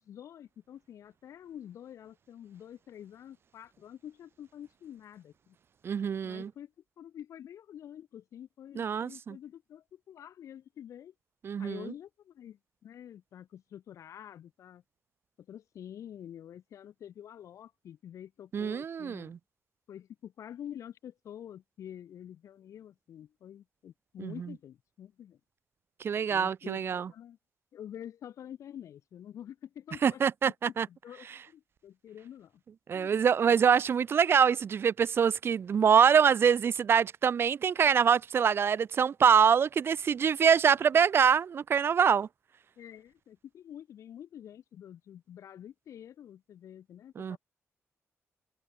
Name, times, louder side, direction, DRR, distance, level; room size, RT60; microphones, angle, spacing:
voice 1, 0.0-5.6 6.2-6.7 7.0-11.1 11.6-14.8 15.4-19.3 19.9-25.4 26.3-27.4 27.7-32.6 32.9-33.2 33.5-33.6 42.8-47.4, left 10 dB, 80° left, 5.9 m, -47 dB
voice 2, 5.8-6.5 8.8-9.4 11.4-11.9 18.5-19.4 24.2-24.3 26.0-27.1 30.0-30.9 32.9-42.3 47.2-47.4, right 7 dB, 50° right, 0.7 m, -25 dB
wide cardioid pair, 135°, 5 cm